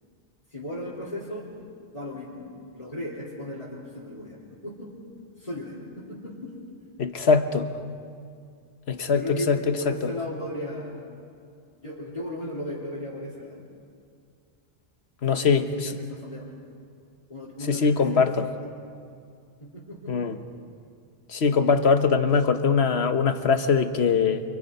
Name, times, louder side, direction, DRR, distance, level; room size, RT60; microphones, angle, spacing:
voice 1, 0.5-1.5 1.9-2.4 2.7-4.9 5.4-6.5 9.1-11.1 11.8-13.7 15.3-16.5 17.3-18.5 19.6-20.3, left 1 dB, 35° left, -7 dB, 4.1 m, -36 dB
voice 2, 7.0-7.7 8.9-9.6 15.2-15.7 17.7-18.4 20.1-20.4 21.3-24.4, left 5 dB, 80° left, 8 dB, 1.5 m, -22 dB
29.0 x 26.0 x 5.5 m, 2.3 s
omnidirectional pair, 1.1 m